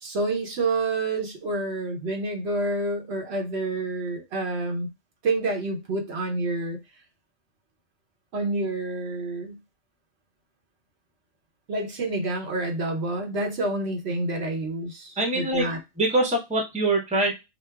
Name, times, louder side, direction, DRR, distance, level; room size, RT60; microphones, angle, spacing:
voice 1, 0.0-4.9 5.2-6.8 8.3-9.6 11.7-15.8, right 2 dB, 65° right, 3 dB, 1.0 m, -28 dB
voice 2, 15.2-15.7 16.0-17.3, right 2 dB, 5° right, 1 dB, 0.7 m, -23 dB
5.0 x 2.0 x 2.2 m, 0.23 s
omnidirectional pair, 1.2 m